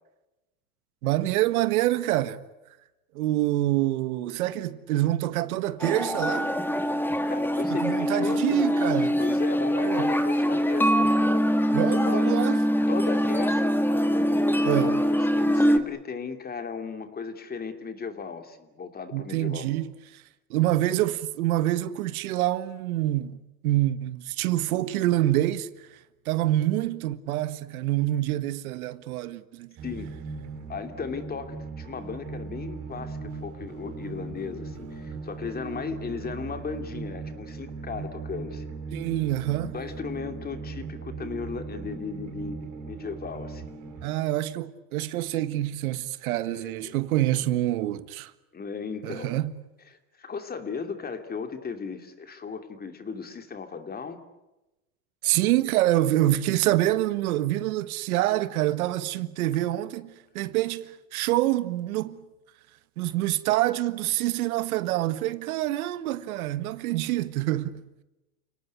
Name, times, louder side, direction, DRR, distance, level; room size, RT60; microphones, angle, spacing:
voice 1, 1.0-2.4 3.1-6.5 7.7-9.2 9.8-10.1 11.7-12.6 14.6-14.9 19.1-20.2 20.5-23.4 23.6-25.7 26.2-29.7 38.9-39.7 44.0-48.3 49.0-49.5 55.2-62.2 63.0-67.8, right 15 dB, 80° right, 1.6 m, -26 dB
sound 1, 5.8-15.8, equal, 5° left, 2.0 m, -23 dB
voice 2, 7.3-8.4 9.2-12.4 12.9-19.6 29.8-30.1 30.7-38.8 39.7-43.6 46.5-47.0 48.5-49.3 50.2-54.2, left 5 dB, 20° left, 2.9 m, -36 dB
sound 2, 29.8-44.1, right 4 dB, 45° right, 6.7 m, -38 dB
29.5 x 18.5 x 9.5 m
supercardioid pair, 120°, 42 cm